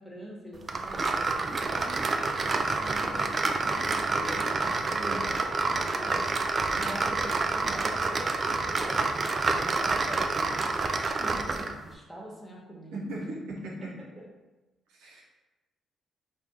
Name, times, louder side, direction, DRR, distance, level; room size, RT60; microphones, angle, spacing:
voice 1, 0.0-6.3 6.8-13.2 14.2-14.3 15.0-15.2, equal, ahead, -4 dB, 1.3 m, -44 dB
sound 1, 0.7-11.8, right 3 dB, 45° right, 0.4 m, -28 dB
voice 2, 4.8-5.3 6.6-7.0 12.9-14.1 14.9-15.2, right 1 dB, 85° right, -3 dB, 0.7 m, -39 dB
3.4 x 2.3 x 4.4 m, 1.1 s
supercardioid pair, 55°, 0 cm